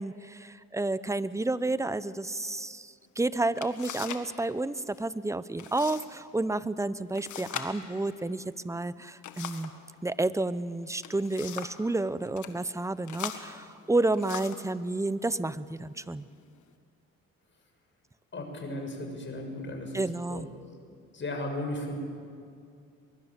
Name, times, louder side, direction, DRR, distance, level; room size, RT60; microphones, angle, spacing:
voice 1, 0.0-9.7 10.0-16.3 19.9-20.5, right 2 dB, 10° right, 15 dB, 0.8 m, -30 dB
sound 1, 3.1-3.2 3.6-4.3 4.6-5.1 5.6-6.1 6.4-6.5 7.2-9.8 10.8-11.8 12.3-12.5 13.1-14.7 15.5-15.6 16.2-16.7, left 9 dB, 75° left, 1.8 m, -41 dB
voice 2, 18.3-20.0 20.3-20.4 21.1-22.0, left 1 dB, 40° left, 3 dB, 6.6 m, -35 dB
23.0 x 22.5 x 7.6 m, 2.3 s
cardioid pair, 90°, 30 cm